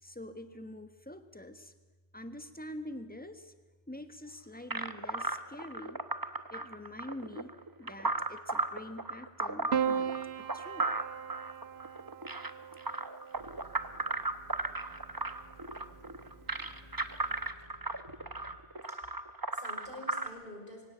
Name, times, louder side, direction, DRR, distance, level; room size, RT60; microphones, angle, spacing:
voice 1, 0.0-1.7 2.1-3.5 3.9-6.0 6.5-7.5 7.8-10.1 10.4-10.9, left 1 dB, 10° left, 9 dB, 1.3 m, -45 dB
sound 1, 4.7-20.3, right 2 dB, 20° right, 0.9 m, -36 dB
Piano, 9.7-14.2 15.4-16.1, right 7 dB, 80° right, 1.1 m, -37 dB
sound 2, 13.3-18.6, right 1 dB, 40° right, 3.8 m, -56 dB
voice 2, 18.5-20.8, left 1 dB, 55° left, 0 dB, 6.1 m, -49 dB
24.0 x 17.0 x 9.0 m, 1.3 s
omnidirectional pair, 1.1 m